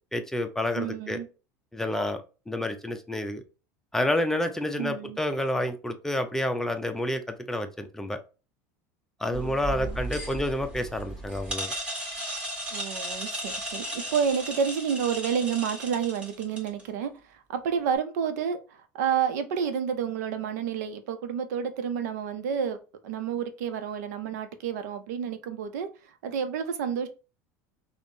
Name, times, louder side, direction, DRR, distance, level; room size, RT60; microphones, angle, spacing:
voice 1, 0.1-1.2 1.7-3.4 3.9-8.2 9.2-11.7, left 1 dB, 5° left, 0.5 m, -29 dB
voice 2, 0.8-1.3 4.8-5.2 9.3-10.0 12.7-22.8 23.0-27.1, right 7 dB, 80° right, 0.5 m, -30 dB
sound 1, 9.3-16.8, right 1 dB, 15° right, 1.4 m, -35 dB
3.5 x 2.0 x 2.6 m
hypercardioid pair, 90°, 9 cm